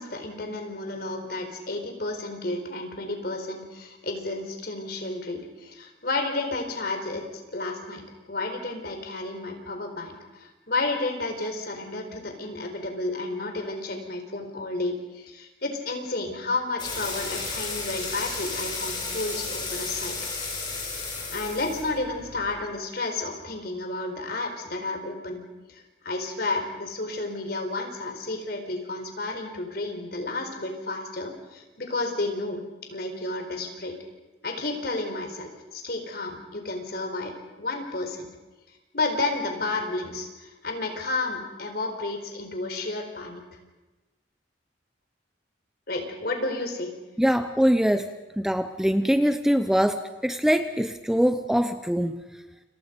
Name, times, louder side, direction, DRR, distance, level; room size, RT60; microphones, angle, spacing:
voice 1, 0.0-7.3 7.5-20.2 21.3-25.4 25.7-34.0 34.4-37.3 37.6-38.3 38.9-43.4 45.9-46.9, left 2 dB, 55° left, 5 dB, 4.5 m, -31 dB
sound 1, 16.8-22.5, left 4 dB, 25° left, 7.8 m, -33 dB
voice 2, 47.2-48.1 48.4-52.2, equal, 5° right, 9 dB, 0.7 m, -23 dB
30.0 x 27.5 x 5.3 m, 1.1 s
head